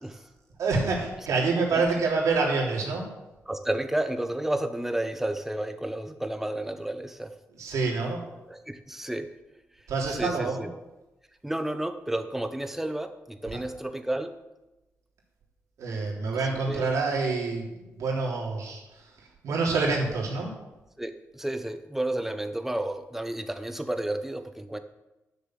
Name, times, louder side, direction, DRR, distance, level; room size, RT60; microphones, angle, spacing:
voice 1, 0.6-3.1 7.5-8.3 9.9-10.7 13.5-13.6 15.8-20.5, right 4 dB, 85° right, -2 dB, 3.5 m, -27 dB
voice 2, 3.5-7.3 8.5-9.3 10.1-10.7 11.4-14.3 16.7-16.9 21.0-24.8, right 1 dB, 5° right, 9 dB, 0.9 m, -31 dB
11.5 x 6.8 x 7.7 m, 1.0 s
wide cardioid pair, 120°, 5 cm